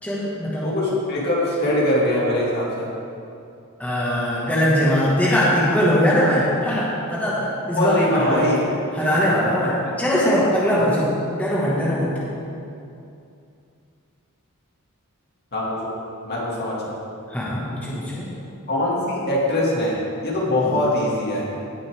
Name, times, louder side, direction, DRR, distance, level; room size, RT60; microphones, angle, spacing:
voice 1, 0.0-0.7 3.8-8.4 8.9-11.1 11.3-12.1 17.3-18.3 20.7-20.8, equal, 5° left, -8 dB, 1.8 m, -21 dB
voice 2, 0.6-2.9 7.7-8.6 10.7-10.9 15.5-15.8 16.2-16.9 18.7-21.5, left 1 dB, 50° left, -5 dB, 2.3 m, -22 dB
17.0 x 6.7 x 3.6 m, 2.6 s
head